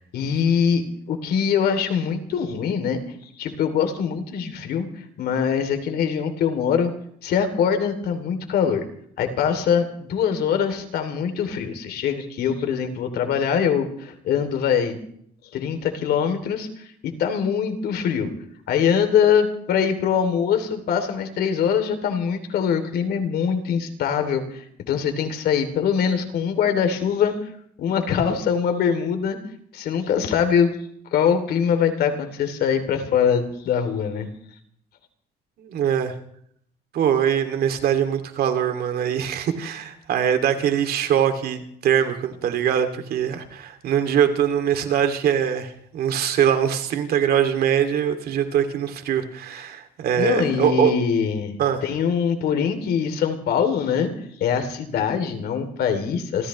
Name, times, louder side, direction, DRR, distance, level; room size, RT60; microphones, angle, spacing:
voice 1, 0.1-6.9 7.2-8.8 9.2-15.0 15.5-18.3 18.7-27.5 27.8-29.4 29.7-30.7 31.1-34.3 50.2-51.6 51.8-54.1 54.4-56.5, left 7 dB, 70° left, 6 dB, 2.7 m, -23 dB
voice 2, 35.6-36.2 36.9-50.9 51.6-51.8, right 9 dB, 65° right, 7 dB, 2.4 m, -22 dB
28.5 x 14.5 x 3.1 m, 0.68 s
cardioid pair, 110°, 17 cm